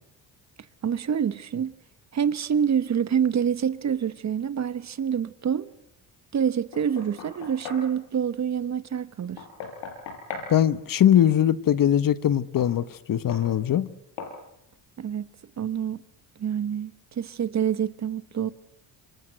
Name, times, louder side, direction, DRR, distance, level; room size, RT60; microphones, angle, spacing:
voice 1, 0.8-1.8 2.1-5.7 6.3-9.4 15.0-15.3 15.6-16.0 16.4-18.5, right 8 dB, 40° right, 1.1 m, -26 dB
Knock, 6.7-7.9 9.4-10.5 12.6-12.7 13.3-13.5 14.2-14.4, left 5 dB, 80° left, 5.6 m, -38 dB
voice 2, 10.5-13.9, left 10 dB, 50° left, 1.3 m, -21 dB
27.0 x 23.5 x 8.1 m
cardioid pair, 90°, 43 cm